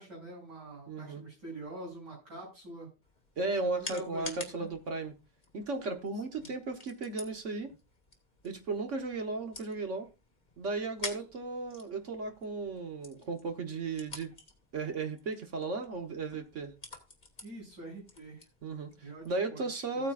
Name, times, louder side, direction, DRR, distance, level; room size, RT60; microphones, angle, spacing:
voice 1, 0.0-2.9 3.6-4.7 6.4-6.5 17.4-18.4 19.0-20.1, right 2 dB, 85° right, 7.8 m, -45 dB
voice 2, 0.9-1.2 3.4-5.1 5.5-7.7 8.4-10.1 10.6-14.3 14.7-16.7 18.6-18.9 19.2-20.1, right 3 dB, 45° right, 1.4 m, -35 dB
sound 1, 3.0-19.4, left 3 dB, 25° left, 1.8 m, -49 dB
15.0 x 8.9 x 2.5 m
omnidirectional pair, 1.8 m